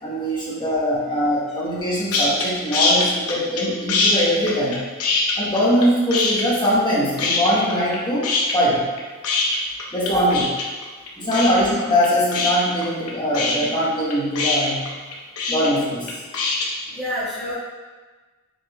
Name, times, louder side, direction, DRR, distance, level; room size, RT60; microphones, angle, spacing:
voice 1, 0.0-4.8 5.4-8.9 9.9-10.4 11.2-14.9 15.5-16.1, equal, 20° left, -6 dB, 1.3 m, -22 dB
sound 1, 2.1-2.5 2.7-3.6 3.9-5.9 6.1-6.9 7.2-8.0 8.2-16.7, left 3 dB, 90° left, 0.9 m, -22 dB
voice 2, 16.9-17.5, right 2 dB, 5° left, -15 dB, 1.7 m, -26 dB
6.4 x 4.2 x 3.4 m, 1.3 s
head